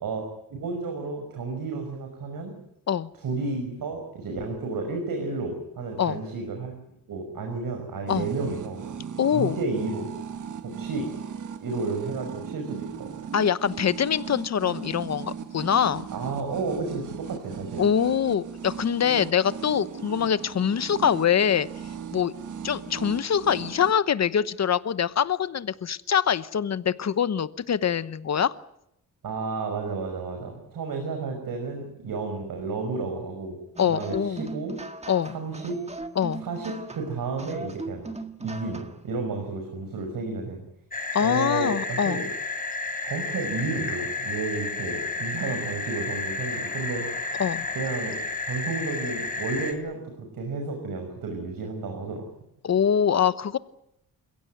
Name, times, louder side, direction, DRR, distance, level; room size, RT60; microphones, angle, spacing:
voice 1, 0.5-2.5 3.2-6.7 7.1-8.8 9.3-10.1 10.6-11.1 11.6-13.1 16.1-17.9 29.2-33.6 33.9-34.7 35.3-35.8 36.4-38.1 38.4-40.6 41.2-42.2 43.0-47.0 47.7-52.2, right 3 dB, 75° right, 4 dB, 5.9 m, -32 dB
sound 1, 8.1-23.9, right 7 dB, 60° right, 1.6 m, -38 dB
voice 2, 9.2-9.6 13.3-16.1 17.8-21.7 22.1-22.3 22.6-28.5 33.8-34.5 35.1-35.4 36.2-36.4 41.1-42.2 47.4-47.7 52.6-53.6, left 8 dB, 50° left, 15 dB, 1.0 m, -24 dB
sound 2, 33.8-39.1, right 3 dB, 20° right, 1.8 m, -39 dB
sound 3, 40.9-49.7, left 3 dB, 25° left, 4.0 m, -32 dB
29.0 x 16.5 x 9.4 m, 0.79 s
wide cardioid pair, 145°, 34 cm